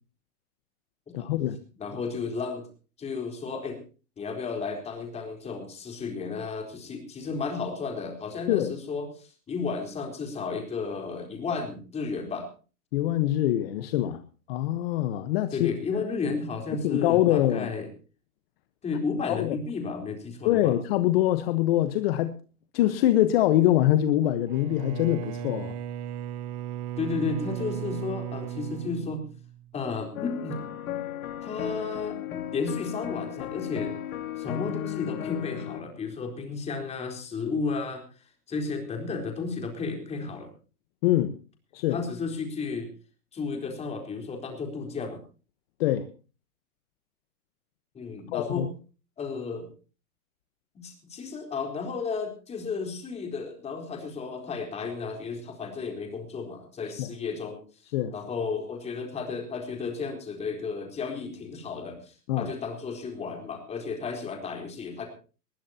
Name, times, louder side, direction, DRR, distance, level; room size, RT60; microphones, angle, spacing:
voice 1, 1.1-1.6 8.5-8.7 12.9-14.2 14.5-15.7 16.8-17.7 19.3-19.6 20.4-22.3 22.7-25.8 41.0-41.3 41.7-42.0 45.8-46.1 48.3-48.7 57.0-57.1 57.9-58.1 62.3-62.5, left 13 dB, 40° left, 11 dB, 1.2 m, -24 dB
voice 2, 1.8-2.7 3.0-3.8 4.2-12.5 15.5-17.9 18.8-20.8 27.0-29.2 29.7-30.6 31.4-33.9 34.4-38.0 38.5-40.5 41.9-42.9 43.3-45.2 47.9-48.7 49.2-49.7 50.7-57.6 58.1-65.1, left 4 dB, 15° left, 4 dB, 4.1 m, -33 dB
Bowed string instrument, 24.5-29.8, right 11 dB, 30° right, 0.7 m, -36 dB
sound 1, 30.1-35.8, left 11 dB, 70° left, 2.3 m, -35 dB
20.5 x 17.0 x 2.9 m, 0.36 s
hypercardioid pair, 150°, 44 cm